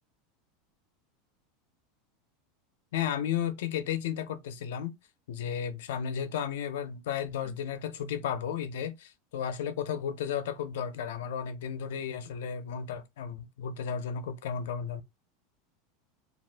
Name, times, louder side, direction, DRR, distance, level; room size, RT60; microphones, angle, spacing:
voice 1, 2.9-4.9 5.3-15.0, left 8 dB, 80° left, 0.5 m, -33 dB
2.5 x 2.4 x 3.3 m
supercardioid pair, 175°, 0 cm